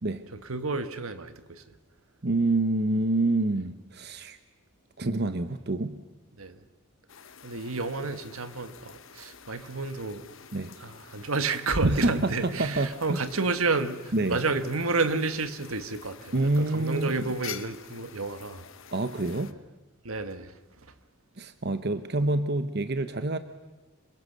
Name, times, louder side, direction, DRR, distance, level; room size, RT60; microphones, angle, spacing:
voice 1, 0.3-1.6 6.4-6.6 7.4-10.3 10.8-18.6 20.0-20.9, right 3 dB, 80° right, 1.5 m, -30 dB
voice 2, 2.2-4.4 5.0-6.0 10.5-10.7 11.8-13.2 14.1-14.4 16.3-17.1 18.9-19.5 21.4-23.4, right 2 dB, 50° right, 1.0 m, -27 dB
sound 1, 7.1-19.5, left 8 dB, 65° left, 1.1 m, -48 dB
27.5 x 23.5 x 6.8 m
head